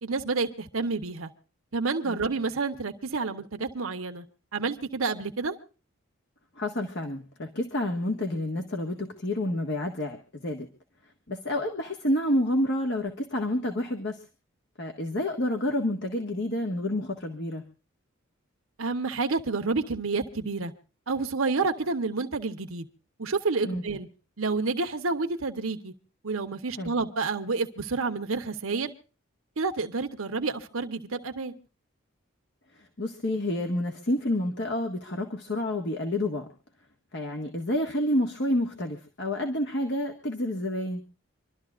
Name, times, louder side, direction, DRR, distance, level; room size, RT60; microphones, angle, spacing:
voice 1, 0.0-1.3 1.7-4.2 4.5-5.5 18.8-20.7 21.1-22.8 23.2-24.1 24.4-25.9 26.2-28.9 29.6-31.5, right 4 dB, 85° right, 5 dB, 1.1 m, -29 dB
voice 2, 6.6-10.7 11.3-14.2 14.8-17.6 23.6-23.8 26.8-26.9 33.0-36.5 37.1-41.0, left 1 dB, 55° left, 3 dB, 1.6 m, -29 dB
27.0 x 12.5 x 2.5 m, 0.34 s
head